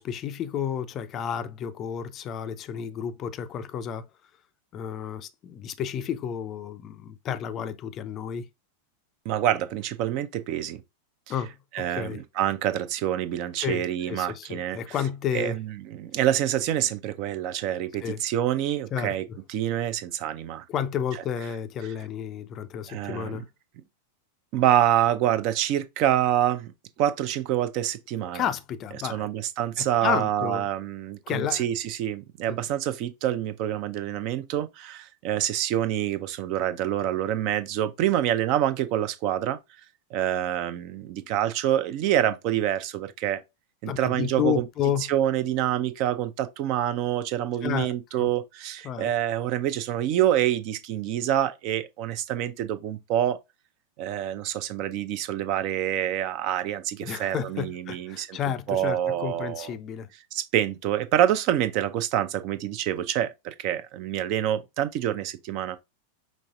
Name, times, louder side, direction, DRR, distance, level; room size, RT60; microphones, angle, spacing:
voice 1, 0.0-4.1 4.7-8.5 11.3-12.2 13.6-15.6 18.0-18.2 18.9-19.1 20.7-23.5 28.3-29.3 29.8-30.6 31.3-31.7 32.5-32.6 43.9-45.0 47.6-47.9 48.1-48.3 48.8-49.1 57.0-60.1, left 8 dB, 30° left, 0.4 m, -31 dB
voice 2, 9.3-10.8 11.3-11.4 11.7-15.0 15.3-20.6 21.1-21.2 21.8-21.9 22.9-23.4 24.5-26.7 27.0-28.5 29.1-39.6 40.1-43.4 43.8-44.7 45.1-53.4 54.0-59.7 60.3-65.8, right 11 dB, 45° right, 0.5 m, -26 dB
5.3 x 3.1 x 2.3 m
figure-of-eight pair, 90°, 0 cm